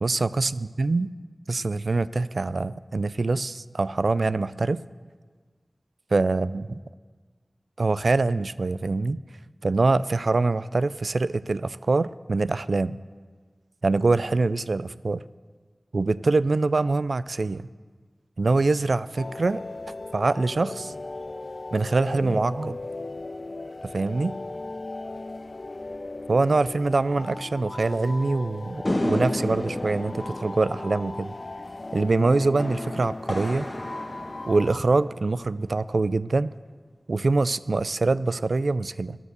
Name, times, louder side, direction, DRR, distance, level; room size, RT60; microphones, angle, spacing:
voice 1, 0.0-1.1 1.5-4.8 6.1-6.8 7.8-9.2 9.6-13.0 13.8-15.2 15.9-17.7 18.4-19.6 20.1-20.9 21.7-22.8 23.8-24.4 26.3-31.3 31.9-33.7 34.5-36.5 37.1-39.2, right 3 dB, 85° right, 17 dB, 0.3 m, -24 dB
sound 1, 19.2-34.8, left 2 dB, 60° left, 0.4 m, -37 dB
sound 2, 28.9-35.4, left 1 dB, 30° left, 1.5 m, -32 dB
13.0 x 11.0 x 6.6 m, 1.5 s
wide cardioid pair, 50°, 0 cm